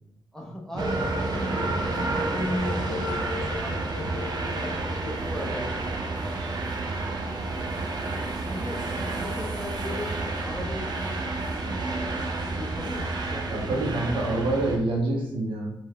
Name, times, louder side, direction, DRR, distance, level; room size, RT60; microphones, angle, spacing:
voice 1, 0.3-1.7 2.1-5.8 8.3-10.2 10.4-12.0 12.3-14.0, left 1 dB, 5° left, -2 dB, 0.5 m, -37 dB
sound 1, 0.8-14.8, right 2 dB, 55° right, 0.4 m, -30 dB
voice 2, 13.5-15.7, right 2 dB, 80° right, -2 dB, 0.7 m, -27 dB
2.3 x 2.1 x 3.3 m, 0.77 s
wide cardioid pair, 135°, 9 cm